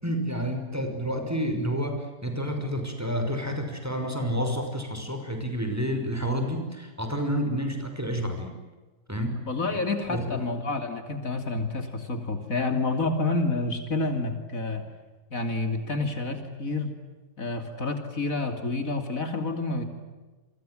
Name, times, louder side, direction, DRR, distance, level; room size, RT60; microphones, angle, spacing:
voice 1, 0.0-8.6 9.1-9.4 9.7-9.8 10.1-10.4, equal, 10° right, 5 dB, 5.6 m, -29 dB
voice 2, 9.5-14.9 15.3-16.9 17.4-19.8, left 3 dB, 65° left, 7 dB, 3.2 m, -29 dB
29.0 x 25.0 x 7.8 m, 1.2 s
omnidirectional pair, 1.6 m